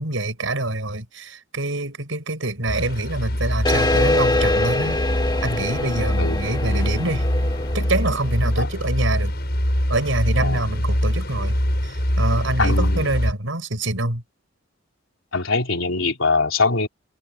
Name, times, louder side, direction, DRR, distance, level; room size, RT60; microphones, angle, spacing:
voice 1, 0.0-5.0 5.4-7.3 7.7-9.3 9.9-14.2, right 2 dB, 75° right, 6.2 m, -25 dB
sound 1, 2.7-13.3, equal, 55° left, 6.0 m, -24 dB
sound 2, 3.7-8.7, left 2 dB, 20° left, 1.8 m, -24 dB
voice 2, 10.4-10.7 12.6-13.1 15.3-16.9, left 3 dB, 85° left, 3.5 m, -22 dB
head